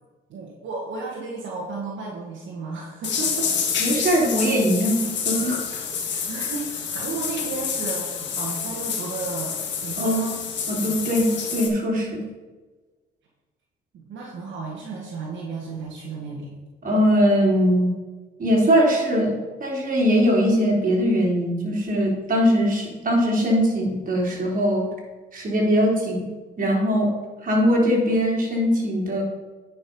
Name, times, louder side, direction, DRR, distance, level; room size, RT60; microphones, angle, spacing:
voice 1, 0.3-3.7 5.7-5.9 6.3-9.6 9.8-10.4 10.9-11.0 13.9-16.5, right 4 dB, 70° right, -3 dB, 1.9 m, -33 dB
sound 1, 3.0-11.7, left 6 dB, 65° left, 1.7 m, -28 dB
voice 2, 3.8-5.6 10.0-10.2 10.7-12.2 16.8-17.9 18.4-19.3 19.6-24.9 25.3-26.3 26.6-27.1 27.4-29.2, equal, 45° right, -2 dB, 3.3 m, -21 dB
9.8 x 5.6 x 5.3 m, 1.3 s
cardioid pair, 90°, 20 cm